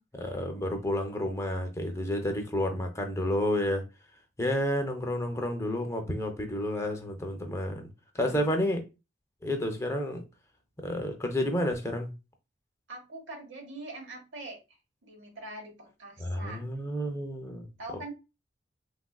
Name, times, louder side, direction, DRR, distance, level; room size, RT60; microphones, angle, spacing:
voice 1, 0.1-3.8 4.4-7.9 8.1-8.8 9.4-10.2 10.8-12.1 16.2-17.7, left 1 dB, 15° left, 0.4 m, -30 dB
voice 2, 12.9-14.6 15.0-16.6 17.8-18.1, right 2 dB, 80° right, 1.0 m, -43 dB
3.3 x 2.4 x 2.2 m
head